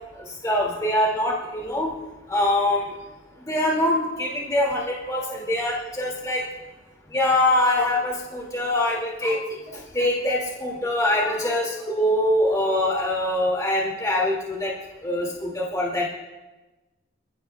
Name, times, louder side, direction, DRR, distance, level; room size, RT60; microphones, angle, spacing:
voice 1, 0.1-1.9 2.3-2.9 3.4-6.4 7.1-14.7 15.0-16.1, left 1 dB, 20° left, -3 dB, 2.1 m, -24 dB
26.0 x 16.0 x 2.2 m, 1.1 s
head